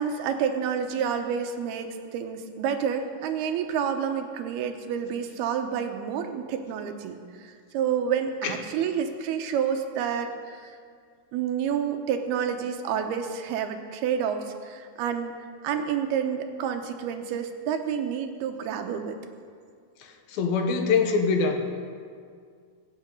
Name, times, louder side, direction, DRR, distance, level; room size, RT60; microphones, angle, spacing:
voice 1, 0.0-10.8 11.3-15.4 15.6-19.2, right 7 dB, 90° right, 6 dB, 3.0 m, -29 dB
voice 2, 20.3-21.7, left 5 dB, 75° left, 5 dB, 2.9 m, -23 dB
23.0 x 9.4 x 5.4 m, 2.1 s
omnidirectional pair, 4.4 m